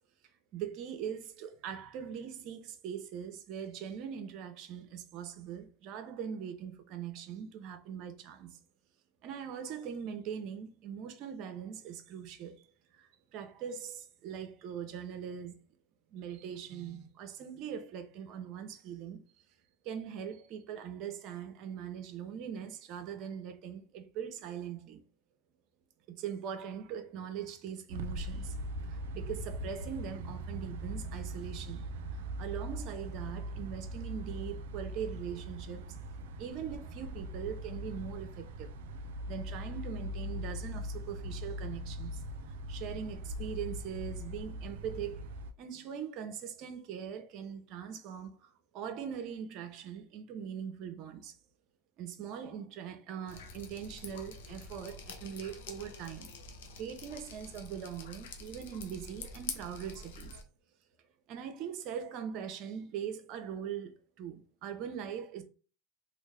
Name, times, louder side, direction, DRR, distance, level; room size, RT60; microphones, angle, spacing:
voice 1, 0.5-8.6 9.2-12.7 12.9-15.5 16.1-19.2 19.8-25.0 26.1-28.6 28.9-31.8 32.1-35.9 36.4-38.7 39.3-42.2 42.7-45.2 45.6-51.3 52.0-56.3 56.7-60.4 61.3-63.9 64.2-65.4, right 8 dB, 50° right, 0.7 m, -41 dB
sound 1, 27.9-45.5, equal, 80° right, 0.4 m, -40 dB
Drip, 53.3-60.4, left 4 dB, 80° left, 0.6 m, -46 dB
3.0 x 2.1 x 3.3 m
supercardioid pair, 110°, 0 cm